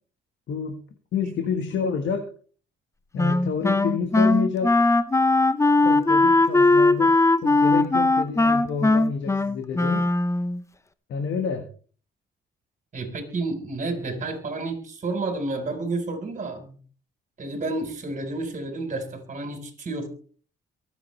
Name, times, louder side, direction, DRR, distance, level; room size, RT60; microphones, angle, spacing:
voice 1, 0.5-0.8 1.1-2.3 3.1-4.8 5.8-7.2 7.4-10.0 11.1-11.7, left 6 dB, 70° left, 1.7 m, -28 dB
Wind instrument woodwind instrument, 3.2-10.6, left 2 dB, 15° left, 0.8 m, -19 dB
voice 2, 12.9-16.8 17.4-20.1, right 2 dB, 40° right, 4.2 m, -30 dB
23.5 x 8.3 x 3.3 m
cardioid pair, 90°, 20 cm